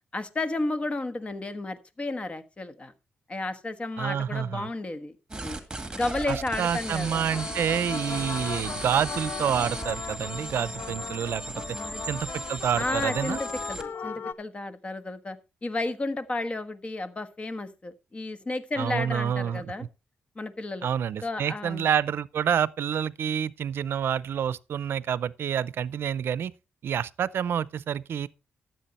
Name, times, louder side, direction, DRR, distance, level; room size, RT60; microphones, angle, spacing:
voice 1, 0.1-2.9 3.3-5.6 5.9-7.4 11.5-12.0 12.8-19.9 20.3-20.9 21.2-21.9, left 2 dB, 30° left, 1.4 m, -32 dB
voice 2, 4.0-4.7 6.3-11.4 12.1-13.4 18.8-19.9 20.8-26.5 26.8-28.3, right 8 dB, 70° right, 0.5 m, -28 dB
sound 1, 5.3-13.9, right 2 dB, 15° right, 2.0 m, -37 dB
sound 2, 7.3-14.3, left 6 dB, 55° left, 0.6 m, -37 dB
13.0 x 7.5 x 4.2 m
cardioid pair, 95°, 4 cm